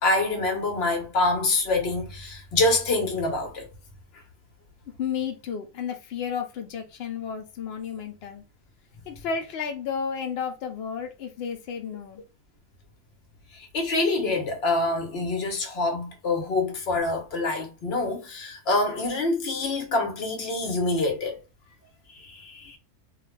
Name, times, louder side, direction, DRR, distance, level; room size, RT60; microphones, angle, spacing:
voice 1, 0.0-3.7 13.5-21.4 22.2-22.8, left 2 dB, 55° left, 0.8 m, -26 dB
voice 2, 5.0-8.4 9.1-12.2, left 7 dB, 85° left, 0.5 m, -32 dB
2.4 x 2.3 x 3.1 m
omnidirectional pair, 1.6 m